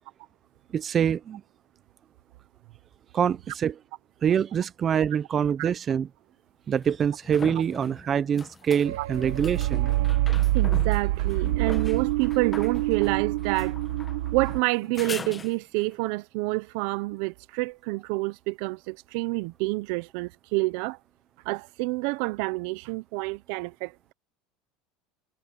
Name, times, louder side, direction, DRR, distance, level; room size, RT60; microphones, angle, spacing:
voice 1, 0.7-1.4 3.1-3.8 4.2-6.1 6.7-9.9, right 8 dB, 30° right, 0.6 m, -25 dB
sound 1, 5.4-5.5 6.8-15.9 19.4-19.5, left 5 dB, 20° left, 1.2 m, -42 dB
sound 2, 8.8-14.6, right 16 dB, 90° right, 1.4 m, -26 dB
voice 2, 10.5-13.8 14.3-21.0 21.4-24.1, right 24 dB, 70° right, 0.8 m, -28 dB
supercardioid pair, 140°, 0 cm